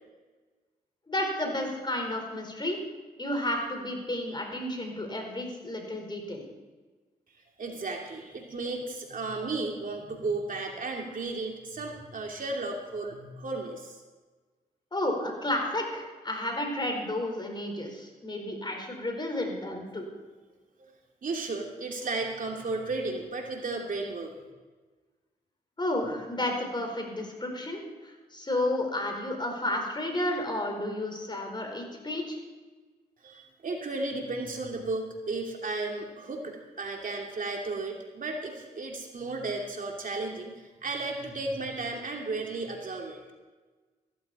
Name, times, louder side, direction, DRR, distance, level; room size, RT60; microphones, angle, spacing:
voice 1, 1.1-2.8 3.2-6.5 14.9-20.0 25.8-32.4, left 1 dB, 25° left, 2 dB, 4.6 m, -32 dB
voice 2, 7.6-14.0 21.2-24.3 33.2-43.2, right 3 dB, 55° right, 1 dB, 2.8 m, -34 dB
15.5 x 14.0 x 4.3 m, 1.3 s
cardioid pair, 55°, 17 cm